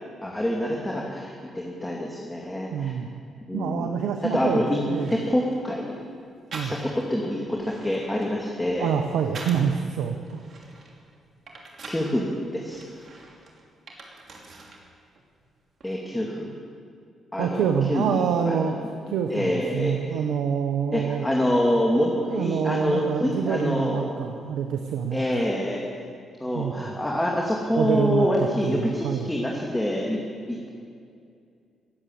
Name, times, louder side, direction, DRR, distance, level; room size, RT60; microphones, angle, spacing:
voice 1, 0.2-2.9 3.5-3.9 4.2-4.8 5.1-6.0 6.6-8.9 11.8-12.8 15.8-16.5 17.3-18.7 19.3-20.0 20.9-24.2 25.1-25.8 26.4-30.2 30.5-30.7, left 1 dB, 15° left, -2 dB, 2.4 m, -26 dB
voice 2, 2.7-3.1 3.5-5.2 6.5-6.7 8.8-10.4 17.4-21.3 22.3-25.2 26.5-26.7 27.7-29.3, right 7 dB, 80° right, 6 dB, 0.8 m, -26 dB
sound 1, 4.5-4.6 4.9-5.7 6.5-7.1 7.5-9.8 10.2-12.1 12.7-14.8 15.1-15.9, right 2 dB, 60° right, 2.8 m, -43 dB
18.5 x 8.2 x 7.7 m, 2.3 s
supercardioid pair, 55°, 0 cm